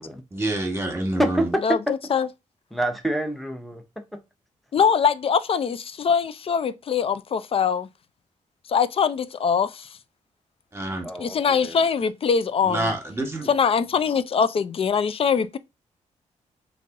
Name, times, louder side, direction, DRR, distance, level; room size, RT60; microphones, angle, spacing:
voice 1, 0.3-1.5 10.7-11.1 12.6-13.5, right 1 dB, 20° right, 1.3 m, -27 dB
voice 2, 1.2-1.6 2.7-4.2 11.0-11.8, right 1 dB, ahead, 0.8 m, -27 dB
voice 3, 4.7-7.9 8.7-9.9 11.2-12.9 13.5-15.6, left 6 dB, 45° left, 0.4 m, -22 dB
3.1 x 2.6 x 2.4 m
cardioid pair, 65°, 13 cm